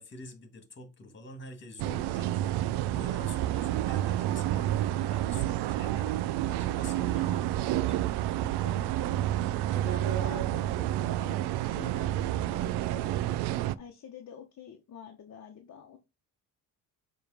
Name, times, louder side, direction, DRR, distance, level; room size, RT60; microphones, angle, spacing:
voice 1, 0.0-2.3 2.9-8.0, left 1 dB, 25° left, 2.1 m, -47 dB
sound 1, 1.8-13.7, right 13 dB, 85° right, 0.5 m, -29 dB
voice 2, 8.4-13.2 13.7-16.0, left 8 dB, 45° left, 1.1 m, -47 dB
7.0 x 3.3 x 4.9 m
cardioid pair, 135°, 40 cm